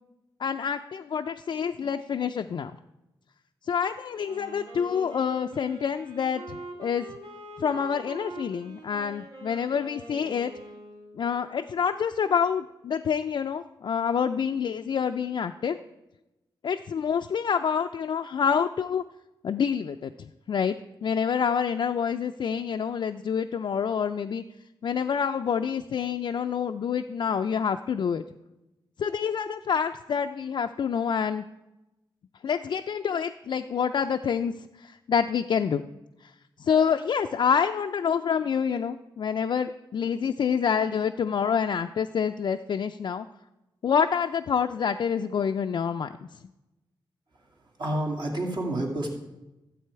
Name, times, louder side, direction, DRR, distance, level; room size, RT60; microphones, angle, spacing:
voice 1, 0.4-2.7 3.7-7.1 7.6-10.5 11.2-15.8 16.6-19.0 19.4-20.8 21.0-24.4 24.8-28.2 29.0-31.4 32.4-35.8 36.6-43.3 43.8-46.1, left 7 dB, 55° left, 5 dB, 0.3 m, -27 dB
Wind instrument woodwind instrument, 4.1-11.3, right 1 dB, 75° right, 2.7 m, -43 dB
voice 2, 47.3-49.1, right 1 dB, 55° right, -1 dB, 2.2 m, -30 dB
12.5 x 7.6 x 4.6 m, 0.99 s
cardioid pair, 100°, 9 cm